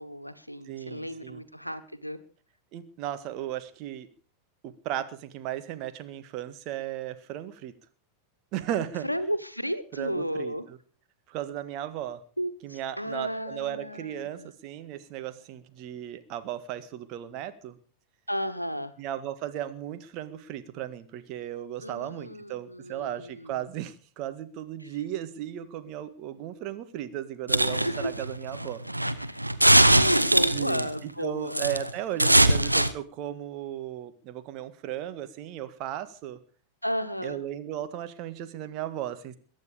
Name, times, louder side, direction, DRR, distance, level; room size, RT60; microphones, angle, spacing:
voice 1, 0.0-2.2 9.0-10.7 12.4-14.5 18.3-18.9 21.8-23.6 24.8-24.9 27.7-28.1 29.2-31.9 36.8-37.4, equal, 90° left, 12 dB, 1.2 m, -33 dB
voice 2, 0.6-1.4 2.7-4.1 4.6-7.7 8.5-9.1 9.9-10.8 11.3-12.2 12.6-17.8 19.0-28.8 30.5-36.4 37.2-39.4, right 12 dB, 40° right, 11 dB, 1.7 m, -36 dB
sound 1, 27.5-30.9 31.5-31.9 32.2-32.9, right 1 dB, 85° right, 0.9 m, -21 dB
22.5 x 9.5 x 5.1 m, 0.41 s
figure-of-eight pair, 90°, 0 cm